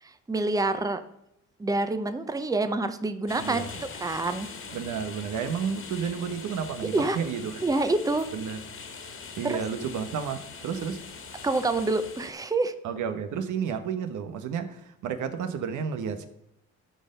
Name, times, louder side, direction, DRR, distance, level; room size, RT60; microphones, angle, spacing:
voice 1, 0.0-1.0 1.6-3.7 4.0-4.5 6.9-7.2 7.6-8.3 9.4-9.6 11.4-12.7, right 2 dB, 10° right, 10 dB, 0.7 m, -27 dB
sound 1, 3.3-12.3, left 5 dB, 45° left, 1.8 m, -42 dB
voice 2, 3.4-3.7 4.7-7.6 8.3-8.6 9.4-11.0 12.8-16.3, right 7 dB, 80° right, 9 dB, 1.1 m, -31 dB
13.0 x 4.4 x 5.2 m, 0.79 s
cardioid pair, 90°, 30 cm